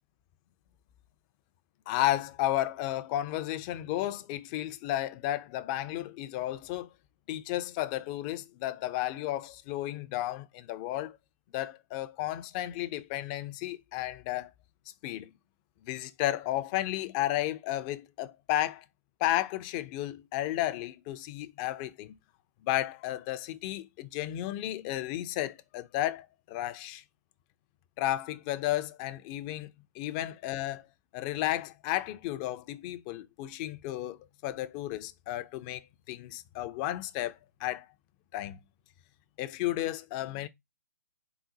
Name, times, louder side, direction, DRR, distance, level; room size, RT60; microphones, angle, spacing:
voice 1, 1.9-6.9 7.3-11.2 11.5-14.5 15.0-15.3 15.8-18.9 19.2-22.2 22.6-27.0 28.0-30.9 31.1-37.9 38.3-38.6 39.4-40.5, left 14 dB, 25° left, 0.3 m, -33 dB
3.8 x 2.1 x 3.9 m
figure-of-eight pair, 130°, 10 cm